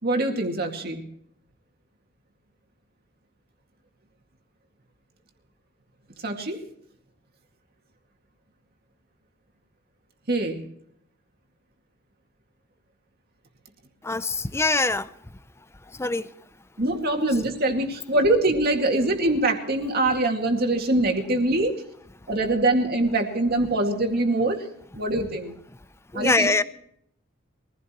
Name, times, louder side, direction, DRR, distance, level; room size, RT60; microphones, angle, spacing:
voice 1, 0.0-1.1 6.2-6.6 10.3-10.7 16.8-21.8 22.3-24.7 24.9-25.6 26.1-26.5, right 2 dB, 50° right, 3 dB, 2.1 m, -23 dB
voice 2, 14.0-15.1 15.9-16.3 26.1-26.6, left 3 dB, 15° left, 14 dB, 0.5 m, -23 dB
23.0 x 15.5 x 3.1 m, 0.71 s
head